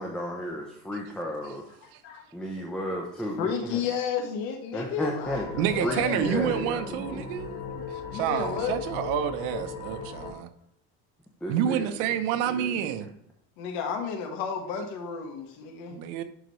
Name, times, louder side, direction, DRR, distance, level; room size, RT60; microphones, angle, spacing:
voice 1, 0.0-1.6 2.3-3.8 4.7-7.3 11.4-11.9 12.5-12.8, equal, ahead, -1 dB, 0.7 m, -33 dB
voice 2, 3.4-6.5 8.0-8.8 13.6-15.9, left 6 dB, 70° left, 3 dB, 1.6 m, -32 dB
sound 1, 5.2-10.3, left 6 dB, 35° left, 2.7 m, -37 dB
voice 3, 5.6-7.8 8.1-10.5 11.5-13.1 15.9-16.2, right 10 dB, 75° right, 9 dB, 0.9 m, -29 dB
11.0 x 4.0 x 3.2 m, 0.73 s
cardioid pair, 160°, 38 cm